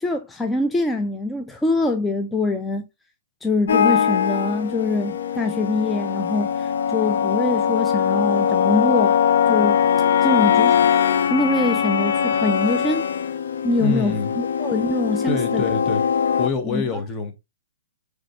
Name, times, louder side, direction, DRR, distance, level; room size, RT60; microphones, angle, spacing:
voice 1, 0.0-2.8 3.4-9.2 9.5-9.8 10.2-10.9 11.3-13.1 13.6-15.6 16.6-17.0, left 2 dB, 10° left, 0.4 m, -24 dB
sound 1, 3.7-16.5, left 8 dB, 70° left, 0.4 m, -21 dB
voice 2, 13.8-14.3 15.3-16.0 16.4-17.3, left 4 dB, 25° left, 1.0 m, -26 dB
4.9 x 3.3 x 2.9 m
hypercardioid pair, 125°, 0 cm